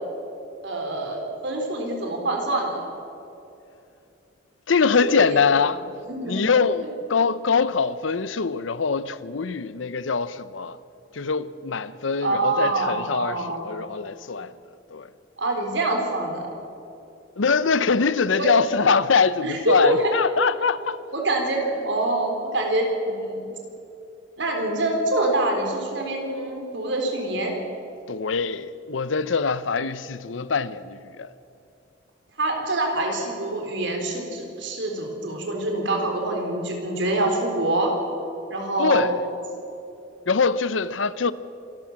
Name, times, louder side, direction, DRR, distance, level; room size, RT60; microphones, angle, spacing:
voice 1, 0.6-2.8 5.1-5.2 5.7-5.8 6.0-6.4 6.8-6.9 12.2-13.7 15.4-16.5 18.3-18.5 19.4-20.1 21.1-21.6 21.8-23.4 24.4-27.6 32.4-37.9 38.5-39.2, right 2 dB, 65° right, 4.3 m, -25 dB
voice 2, 4.7-5.8 6.2-10.8 11.1-14.5 14.9-15.1 17.4-21.0 28.1-31.3 38.8-39.2 40.3-41.3, left 5 dB, 80° left, 0.7 m, -23 dB
26.5 x 13.5 x 7.5 m
head